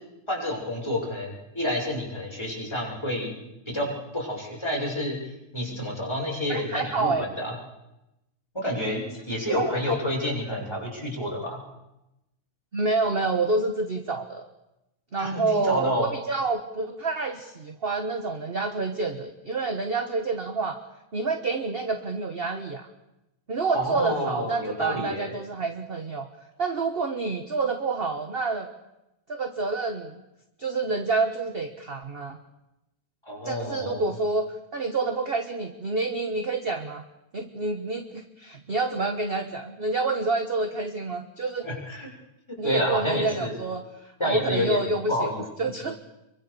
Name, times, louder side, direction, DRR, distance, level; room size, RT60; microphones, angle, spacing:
voice 1, 0.3-3.4 3.7-5.2 5.5-7.5 8.5-11.6 15.2-16.1 23.7-25.3 33.2-34.0 41.6-42.1 42.5-43.6 44.2-45.4, left 1 dB, 10° left, -2 dB, 6.5 m, -29 dB
voice 2, 6.5-7.3 9.5-9.7 12.7-14.5 15.1-20.8 21.1-22.9 23.5-26.3 26.6-28.7 29.3-30.2 30.6-32.4 33.4-34.4 34.7-37.0 37.3-41.6 42.6-43.8 44.2-45.3 45.6-46.0, right 3 dB, 30° right, 6 dB, 1.3 m, -28 dB
26.0 x 23.5 x 7.0 m, 0.92 s
omnidirectional pair, 2.4 m